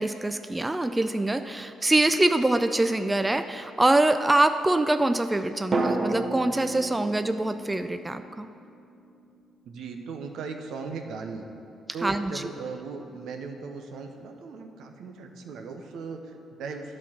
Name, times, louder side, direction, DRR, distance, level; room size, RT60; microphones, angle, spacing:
voice 1, 0.0-8.5 12.0-12.4, right 2 dB, 15° right, 9 dB, 0.3 m, -24 dB
sound 1, 2.1-3.3 5.7-9.7 9.9-10.0, right 2 dB, 35° right, 0.7 m, -33 dB
voice 2, 9.6-11.5 11.9-17.0, right 4 dB, 80° right, 4 dB, 0.8 m, -38 dB
11.0 x 4.4 x 5.9 m, 2.6 s
cardioid pair, 90°, 0 cm